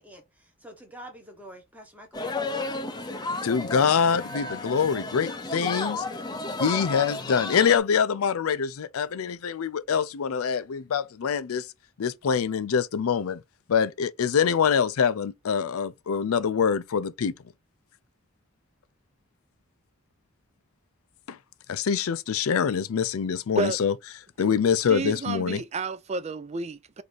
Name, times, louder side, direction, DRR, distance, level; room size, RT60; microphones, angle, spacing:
voice 1, 0.0-3.0, right 1 dB, 5° right, 1.1 m, -47 dB
sound 1, 2.1-7.8, left 3 dB, 20° left, 0.6 m, -32 dB
voice 2, 3.4-6.0 6.6-11.7 12.0-13.4 13.7-17.3 21.3-21.4 21.7-23.9 24.4-25.6, left 6 dB, 80° left, 0.4 m, -25 dB
voice 3, 24.9-27.0, right 3 dB, 30° right, 0.4 m, -31 dB
4.0 x 2.7 x 4.7 m
head